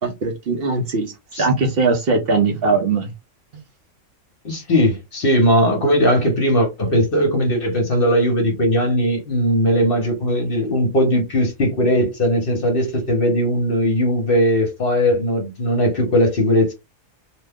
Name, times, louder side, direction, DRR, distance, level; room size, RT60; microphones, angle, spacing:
voice 1, 0.0-1.1 1.4-3.1, right 4 dB, 55° right, 0.8 m, -20 dB
voice 2, 4.4-16.7, equal, 50° left, 1.0 m, -18 dB
2.8 x 2.2 x 3.4 m
omnidirectional pair, 1.4 m